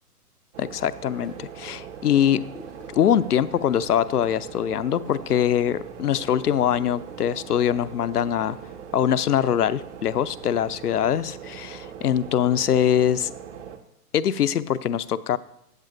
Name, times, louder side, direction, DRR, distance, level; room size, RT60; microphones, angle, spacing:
sound 1, 0.5-13.8, right 8 dB, 50° right, 1.1 m, -40 dB
voice 1, 0.6-2.4 2.9-8.6 8.9-13.3 14.1-15.4, left 10 dB, 75° left, 17 dB, 0.6 m, -23 dB
sound 2, 1.0-9.2, equal, ahead, 0.5 m, -53 dB
14.5 x 8.0 x 2.5 m, 0.79 s
figure-of-eight pair, 125°, 47 cm